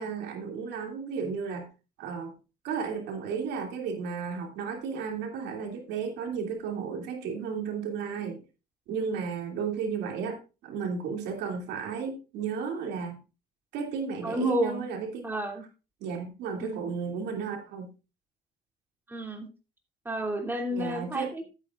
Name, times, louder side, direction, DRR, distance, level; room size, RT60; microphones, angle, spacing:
voice 1, 0.0-1.7 2.0-2.3 2.6-8.4 8.9-13.2 13.7-15.3 16.0-17.9 20.7-21.3, right 6 dB, 85° right, 3 dB, 2.7 m, -33 dB
voice 2, 14.2-14.9 15.2-15.6 16.6-16.9 19.1-19.5 20.0-21.4, right 1 dB, 10° right, 2 dB, 2.7 m, -30 dB
14.0 x 8.9 x 2.5 m, 0.30 s
cardioid pair, 110°, 17 cm